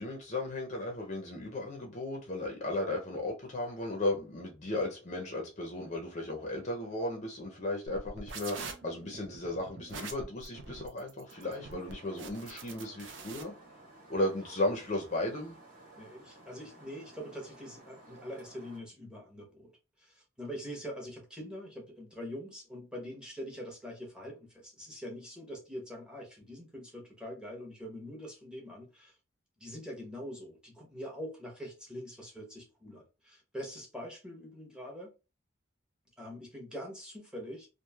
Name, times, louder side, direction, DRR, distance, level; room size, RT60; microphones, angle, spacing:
voice 1, 0.0-13.5 14.1-15.6, left 1 dB, 35° left, 0.5 m, -35 dB
sound 1, 7.9-13.4, right 4 dB, 65° right, 0.5 m, -45 dB
sound 2, 11.3-18.8, right 2 dB, 40° right, 1.1 m, -55 dB
voice 2, 16.0-19.7 20.0-29.2 29.6-35.1 36.2-37.7, equal, 5° right, 0.8 m, -44 dB
3.0 x 2.4 x 2.3 m
head